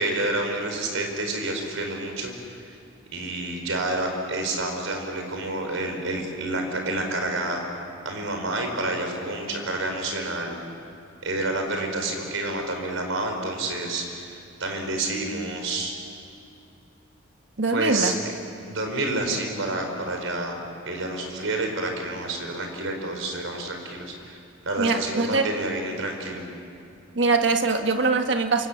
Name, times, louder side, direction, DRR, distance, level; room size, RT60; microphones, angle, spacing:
voice 1, 0.0-2.8 3.1-7.6 8.0-10.6 11.2-15.9 17.7-18.1 18.6-20.6 20.8-26.4, right 2 dB, 70° right, 3 dB, 4.8 m, -29 dB
voice 2, 17.6-18.1 24.8-25.4 27.1-28.7, right 3 dB, 55° right, 6 dB, 1.6 m, -22 dB
29.0 x 26.5 x 7.3 m, 2.6 s
head